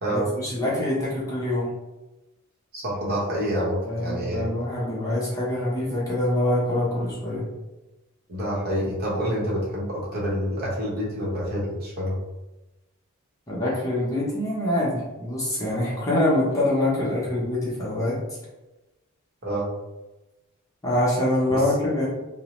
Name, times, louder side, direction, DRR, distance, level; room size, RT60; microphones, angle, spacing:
voice 1, 0.1-1.7 3.9-7.5 13.5-18.2 20.8-22.1, left 1 dB, 15° left, -6 dB, 0.6 m, -25 dB
voice 2, 2.7-4.5 8.3-12.2 19.4-19.7 21.5-21.6, equal, 45° right, -5 dB, 0.9 m, -27 dB
2.7 x 2.0 x 2.9 m, 1.0 s
head